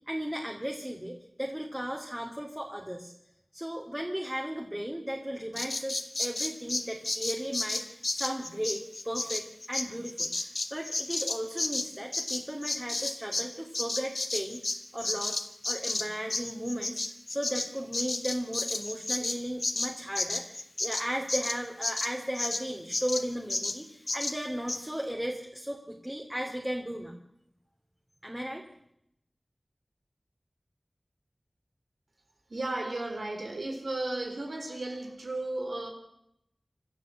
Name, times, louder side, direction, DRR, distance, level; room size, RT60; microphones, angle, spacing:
voice 1, 0.1-3.1 3.5-14.6 14.9-17.0 17.3-27.2 28.2-28.6, equal, 10° right, 1 dB, 2.9 m, -36 dB
Bird vocalization bird call bird song, 5.6-13.5 13.7-22.6 22.9-23.2 23.5-23.8 24.1-24.4 24.7-24.8, left 2 dB, 65° left, 1.6 m, -32 dB
voice 2, 32.5-35.9, right 2 dB, 90° right, 4 dB, 4.1 m, -34 dB
26.5 x 13.0 x 7.8 m, 0.77 s
wide cardioid pair, 45°, 0 cm